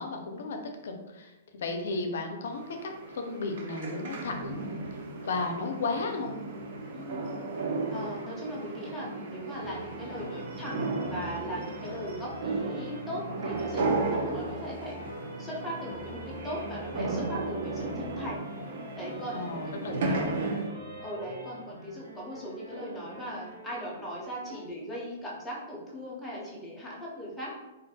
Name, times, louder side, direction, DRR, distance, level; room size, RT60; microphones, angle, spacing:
voice 1, 0.0-4.6 5.3-6.3 19.3-20.1, left 3 dB, 70° left, 4 dB, 0.4 m, -34 dB
sound 1, 2.5-20.7, right 3 dB, 55° right, 0.4 m, -35 dB
voice 2, 6.9-7.3 7.9-10.8 11.1-15.0 15.4-18.4 19.0-20.6 21.0-27.5, equal, ahead, -7 dB, 0.5 m, -39 dB
sound 2, 9.5-24.7, right 1 dB, 75° right, 1.0 m, -45 dB
2.3 x 2.1 x 2.6 m, 1.0 s
hypercardioid pair, 165°, 0 cm